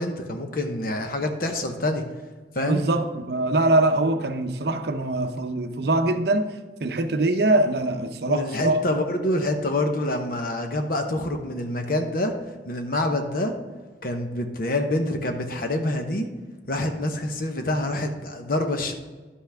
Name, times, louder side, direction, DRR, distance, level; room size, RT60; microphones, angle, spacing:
voice 1, 0.0-2.0 2.5-2.8 8.3-12.3 12.7-13.5 14.0-16.3 16.7-18.9, left 1 dB, 50° left, 5 dB, 0.9 m, -26 dB
voice 2, 2.6-6.5 6.8-8.8, right 2 dB, 60° right, 7 dB, 0.7 m, -23 dB
11.0 x 5.8 x 3.4 m, 1.3 s
head